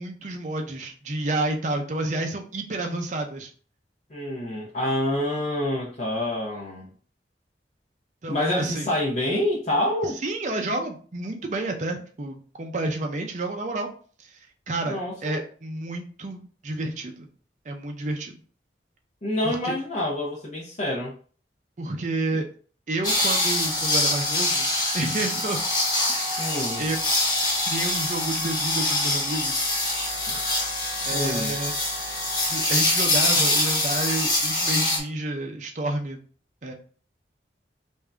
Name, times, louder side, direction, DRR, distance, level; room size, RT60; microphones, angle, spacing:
voice 1, 0.0-3.5 8.2-8.9 10.2-13.9 14.2-14.3 14.7-17.3 17.7-18.4 19.4-19.7 21.8-22.4 22.9-24.7 24.9-25.6 26.1-27.0 27.7-29.7 31.0-31.7 32.4-36.2 36.6-36.7, right 2 dB, 40° right, 3 dB, 0.5 m, -30 dB
voice 2, 4.1-6.9 8.3-10.2 14.9-15.4 19.2-21.1 26.4-26.8 30.3-30.4 31.1-31.6, left 1 dB, 40° left, -4 dB, 0.7 m, -27 dB
sound 1, 23.0-35.0, left 2 dB, 25° left, 1.1 m, -24 dB
3.5 x 2.6 x 3.4 m, 0.42 s
head